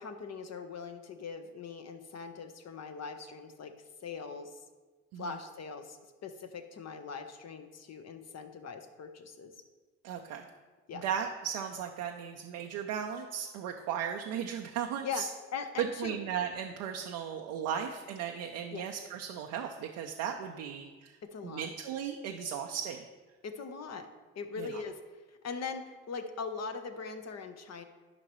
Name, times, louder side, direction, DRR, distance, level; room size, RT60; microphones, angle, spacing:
voice 1, 0.0-3.7 4.0-4.5 5.2-9.5 10.9-11.1 15.0-16.2 18.7-18.8 21.2-21.7 23.4-24.1 24.4-25.0 25.4-27.8, left 5 dB, 55° left, 7 dB, 0.9 m, -41 dB
voice 2, 10.0-10.4 10.9-15.3 15.8-21.2 21.4-23.0 24.6-24.7, right 8 dB, 85° right, 3 dB, 0.5 m, -36 dB
10.5 x 5.3 x 3.0 m, 1.3 s
hypercardioid pair, 50°, 31 cm